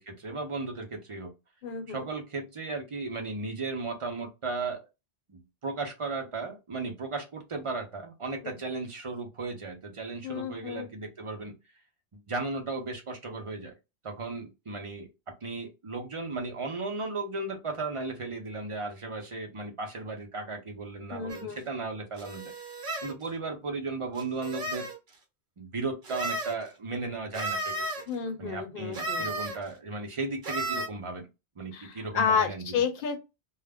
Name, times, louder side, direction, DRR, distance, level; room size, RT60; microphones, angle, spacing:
voice 1, 0.0-1.3 1.9-4.8 5.3-11.5 12.1-13.7 14.0-15.1 15.4-22.5 23.0-24.9 25.6-28.0 28.4-31.3 31.6-32.8, right 3 dB, 35° right, 0.6 m, -35 dB
voice 2, 1.6-2.1 8.4-8.6 10.2-10.9 21.1-21.6 28.1-29.3 31.7-33.2, left 6 dB, 60° left, 0.8 m, -31 dB
sound 1, 21.3-21.4 22.2-23.1 24.2-25.0 26.0-26.6 27.3-28.0 28.9-29.6 30.4-30.9, right 2 dB, 60° right, 0.9 m, -33 dB
2.3 x 2.0 x 3.4 m
omnidirectional pair, 1.1 m